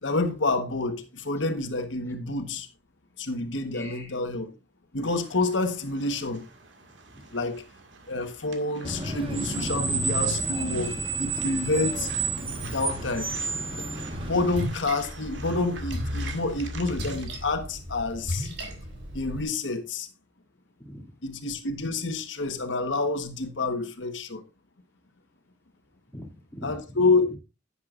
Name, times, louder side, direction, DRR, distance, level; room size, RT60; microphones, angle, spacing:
voice 1, 0.0-2.7 3.2-4.5 4.9-6.4 7.3-7.6 8.1-12.1 12.6-13.3 14.1-18.5 19.1-20.1 21.2-24.4 26.6-27.4, left 3 dB, 90° left, 1.3 m, -28 dB
voice 2, 3.7-4.2 6.9-7.2 11.3-11.6 20.8-21.1 26.1-27.1, left 1 dB, 15° left, 2.5 m, -42 dB
sound 1, 5.0-17.2, right 3 dB, 90° right, 2.0 m, -47 dB
Screech, 8.8-14.7, right 3 dB, 30° right, 1.4 m, -30 dB
Splash splatter, 14.1-19.4, equal, 70° right, 3.4 m, -35 dB
11.0 x 9.7 x 2.5 m
head